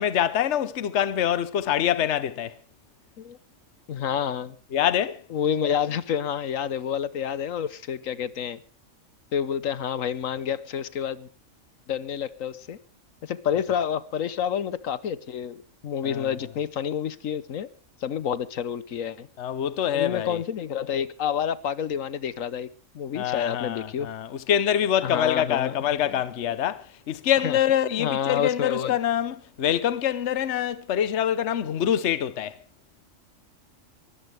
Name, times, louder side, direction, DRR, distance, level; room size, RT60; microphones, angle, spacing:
voice 1, 0.0-2.5 4.7-5.2 16.0-16.3 19.4-20.4 23.1-32.5, left 10 dB, 65° left, 1.2 m, -25 dB
voice 2, 3.9-4.6 5.3-8.6 9.3-11.3 11.9-12.8 13.2-17.7 18.0-19.3 19.9-22.7 22.9-24.1 25.0-26.2 27.4-27.6 28.0-29.0, left 8 dB, 80° left, 1.3 m, -29 dB
22.5 x 14.5 x 3.4 m
omnidirectional pair, 1.4 m